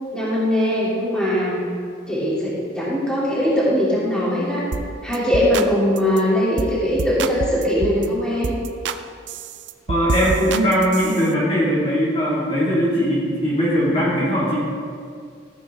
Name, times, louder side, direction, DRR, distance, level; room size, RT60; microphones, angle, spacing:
voice 1, 0.1-1.6 2.1-4.6 5.0-8.5, equal, 5° left, -9 dB, 3.2 m, -21 dB
sound 1, 4.7-4.9 5.1-5.7 6.0-6.2 6.6-6.7 7.0-8.1 8.4-9.0 9.3-11.3, right 4 dB, 75° right, 0.5 m, -27 dB
voice 2, 9.9-14.7, equal, 35° left, -8 dB, 2.6 m, -20 dB
15.0 x 8.8 x 3.8 m, 2.2 s
head